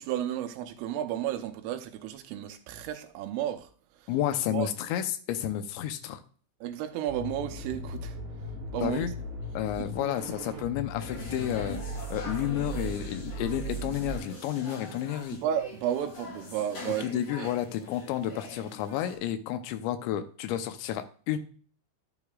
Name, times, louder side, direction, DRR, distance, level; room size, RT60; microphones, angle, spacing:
voice 1, 0.0-3.7 4.5-4.7 6.6-8.2 8.7-9.1 15.4-17.1 17.4-17.5, right 10 dB, 85° right, 3.3 m, -32 dB
voice 2, 4.1-6.2 8.8-9.1 9.5-11.8 12.1-15.4 16.9-21.4, left 11 dB, 80° left, 2.8 m, -31 dB
sound 1, 7.1-14.2, right 1 dB, 45° right, 3.7 m, -38 dB
sound 2, 11.0-19.1, left 3 dB, 40° left, 3.8 m, -43 dB
11.5 x 9.1 x 2.4 m
omnidirectional pair, 5.7 m